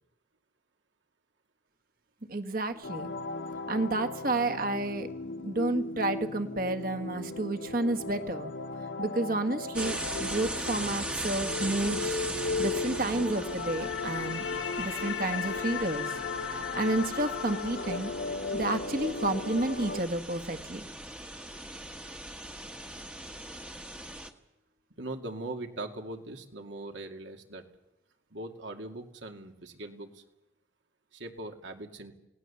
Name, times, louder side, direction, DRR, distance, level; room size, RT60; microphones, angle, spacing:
voice 1, 2.3-3.2 3.7-5.1 5.4-8.5 9.0-14.5 14.8-16.1 16.5-18.1 18.5-20.8, right 2 dB, 50° right, 7 dB, 1.7 m, -31 dB
sound 1, 2.8-20.0, left 4 dB, 85° left, 1.7 m, -36 dB
sound 2, 9.7-24.3, right 1 dB, 5° right, 1.2 m, -39 dB
voice 2, 25.0-27.6 28.3-30.2 31.1-32.1, right 2 dB, 75° right, 4 dB, 2.4 m, -40 dB
28.5 x 18.5 x 7.1 m, 0.93 s
head